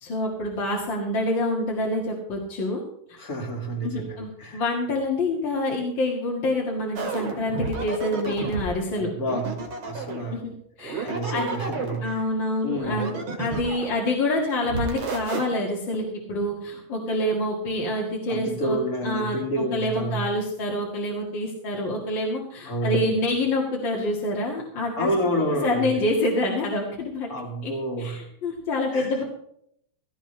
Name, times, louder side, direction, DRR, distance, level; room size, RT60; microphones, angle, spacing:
voice 1, 0.0-2.8 3.1-3.2 3.8-9.1 10.3-10.4 10.8-11.5 12.0-25.1 25.5-27.3 27.6-27.7 28.0-29.2, left 1 dB, 65° left, -2 dB, 2.6 m, -27 dB
voice 2, 3.2-4.6 9.0-9.6 9.8-10.4 11.0-12.2 12.6-13.1 18.3-20.3 22.7-23.1 25.0-25.9 27.3-28.2 28.9-29.1, right 1 dB, 45° left, 2 dB, 2.7 m, -29 dB
sound 1, 7.0-8.7 9.3-10.3 10.8-12.1 12.7-14.0 14.6-15.4, right 4 dB, 75° right, 2.8 m, -31 dB
16.5 x 15.0 x 3.3 m, 0.72 s
omnidirectional pair, 2.3 m